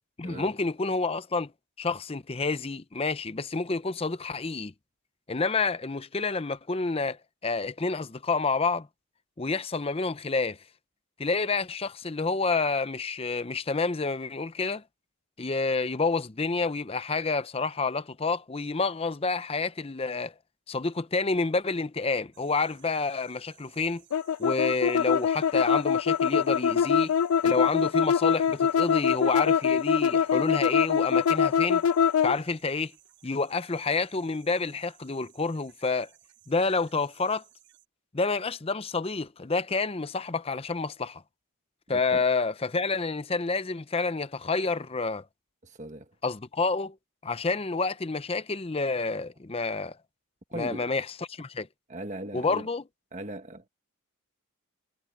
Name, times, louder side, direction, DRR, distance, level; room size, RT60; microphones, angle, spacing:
voice 1, 0.2-1.5 1.8-4.7 5.3-8.9 9.4-10.6 11.2-14.8 15.4-20.3 20.7-24.0 24.4-27.2 27.4-31.8 32.2-32.9 33.2-36.1 36.5-37.4 38.1-41.2 41.9-45.2 46.2-47.0 47.2-50.0 50.6-51.0 51.3-51.7 52.3-52.8, left 3 dB, 25° left, 0.6 m, -29 dB
sound 1, 22.3-37.9, right 14 dB, 55° right, 7.7 m, -60 dB
sound 2, 24.1-32.4, left 7 dB, 75° left, 0.3 m, -24 dB
voice 2, 41.9-42.2 45.6-46.2 50.5-50.9 51.9-52.7 53.1-53.7, right 1 dB, 35° right, 1.4 m, -39 dB
head